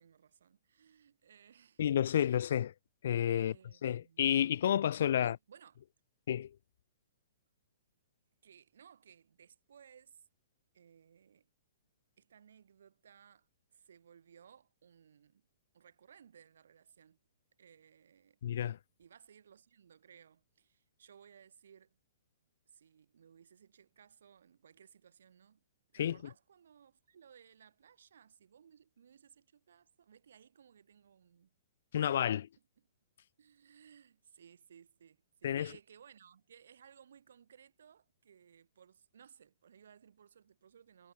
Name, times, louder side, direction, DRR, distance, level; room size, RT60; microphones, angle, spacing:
voice 1, 0.0-2.5 3.4-4.2 5.2-5.8 8.4-10.3 10.7-11.5 12.2-15.5 15.7-17.2 17.6-18.4 19.0-22.0 22.7-25.6 25.9-31.5 32.8-32.9 33.4-41.1, right 8 dB, 70° right, 2.8 m, -61 dB
voice 2, 1.8-2.7 3.0-3.5 3.8-5.4 6.3-6.5 18.4-18.8 26.0-26.2 31.9-32.5 35.4-35.7, left 10 dB, 50° left, 0.3 m, -30 dB
hypercardioid pair, 175°, 0 cm